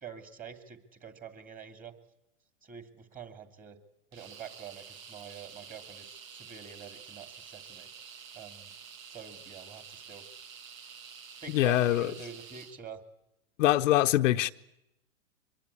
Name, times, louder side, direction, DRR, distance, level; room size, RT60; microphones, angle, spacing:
voice 1, 0.0-1.9 2.6-3.8 4.1-7.9 8.3-8.7 9.1-10.3 11.4-13.0, right 7 dB, 20° right, 2.6 m, -46 dB
sound 1, 4.1-12.8, right 7 dB, 75° right, 1.9 m, -49 dB
voice 2, 11.5-12.1 13.6-14.5, left 14 dB, 65° left, 0.8 m, -24 dB
25.0 x 21.0 x 8.4 m
hypercardioid pair, 115°, 41 cm